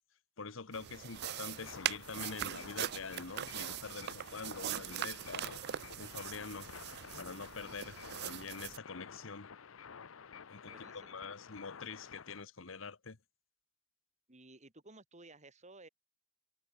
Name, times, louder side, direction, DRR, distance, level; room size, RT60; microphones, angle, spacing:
voice 1, 0.4-6.7 7.2-9.5 10.5-13.2, left 4 dB, 70° left, 1.2 m, -45 dB
sound 1, 0.7-8.8, right 12 dB, 55° right, 0.4 m, -41 dB
sound 2, 1.1-12.4, left 6 dB, 90° left, 0.7 m, -51 dB
voice 2, 10.6-11.2 14.3-15.9, right 2 dB, 35° right, 5.6 m, -56 dB
head